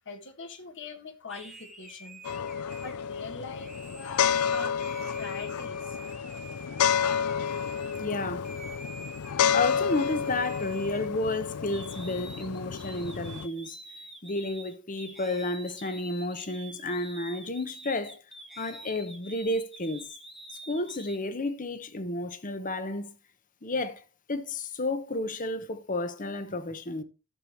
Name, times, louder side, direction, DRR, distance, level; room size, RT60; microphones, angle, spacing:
voice 1, 0.1-2.2 2.8-6.0, left 3 dB, 55° left, 1.6 m, -42 dB
sound 1, 1.3-8.1 8.4-11.4 11.7-21.2, right 2 dB, ahead, 1.1 m, -47 dB
sound 2, 2.2-13.5, left 7 dB, 90° left, 0.5 m, -30 dB
voice 2, 8.0-8.5 9.5-18.2 18.6-20.0 20.7-23.2 23.6-24.0 24.3-27.0, left 2 dB, 35° left, 1.0 m, -32 dB
13.5 x 6.9 x 3.0 m
head